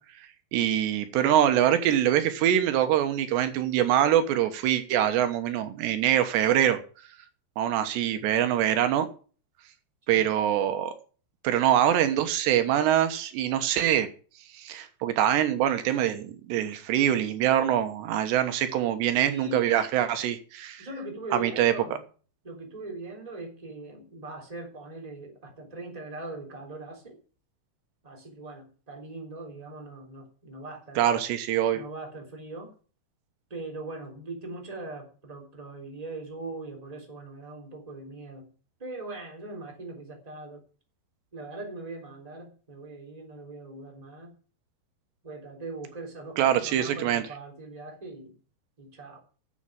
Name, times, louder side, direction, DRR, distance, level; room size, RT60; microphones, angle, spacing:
voice 1, 0.5-6.8 7.6-9.1 10.1-10.9 11.4-14.1 14.5-20.9 21.3-21.7 31.0-31.8 46.4-47.2, right 11 dB, 85° right, 3.4 m, -24 dB
voice 2, 19.3-19.8 20.8-22.0 22.4-27.2 28.0-31.1 31.7-32.7 33.5-38.5 38.8-40.6 41.3-44.3 45.2-48.3 48.8-49.2, right 2 dB, 10° right, 3.0 m, -40 dB
11.0 x 7.5 x 8.8 m
omnidirectional pair, 4.9 m